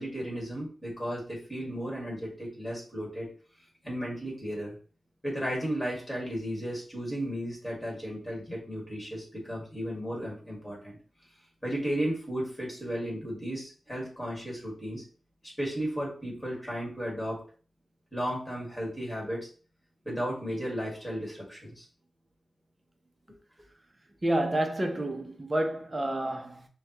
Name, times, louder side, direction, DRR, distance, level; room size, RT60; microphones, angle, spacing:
voice 1, 0.0-3.3 3.8-4.8 5.2-11.0 11.6-15.0 15.6-17.4 18.1-19.5 20.1-21.8, equal, 5° left, 2.1 m, -34 dB
voice 2, 24.2-26.7, right 1 dB, 25° right, 0.8 m, -29 dB
6.8 x 2.3 x 3.0 m
wide cardioid pair, 100°, 0 cm